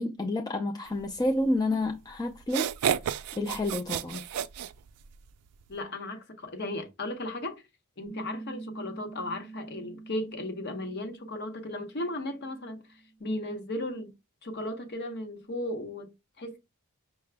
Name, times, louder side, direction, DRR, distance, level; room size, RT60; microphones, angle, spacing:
voice 1, 0.0-2.7 3.4-4.2, left 1 dB, 15° left, 0.3 m, -29 dB
sound 1, 1.9-2.0 2.4-5.3, right 9 dB, 90° right, 0.4 m, -31 dB
voice 2, 5.7-7.6 8.0-12.8 13.2-14.1 14.4-16.6, left 1 dB, 50° left, 0.8 m, -35 dB
Piano, 8.0-13.2, right 3 dB, 40° right, 0.7 m, -46 dB
5.7 x 2.2 x 3.3 m
head